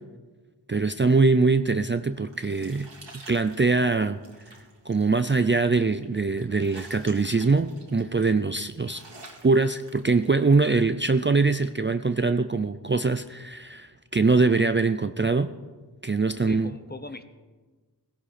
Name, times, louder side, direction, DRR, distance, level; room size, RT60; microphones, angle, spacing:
voice 1, 0.7-2.9 3.3-4.2 4.9-9.0 9.4-15.5 16.0-16.7, right 3 dB, 25° right, 10 dB, 0.5 m, -23 dB
sound 1, 1.8-10.7, right 2 dB, 85° right, 2.7 m, -50 dB
voice 2, 16.2-17.2, left 2 dB, 25° left, 9 dB, 1.1 m, -41 dB
17.5 x 16.5 x 4.3 m, 1.3 s
wide cardioid pair, 55°, 42 cm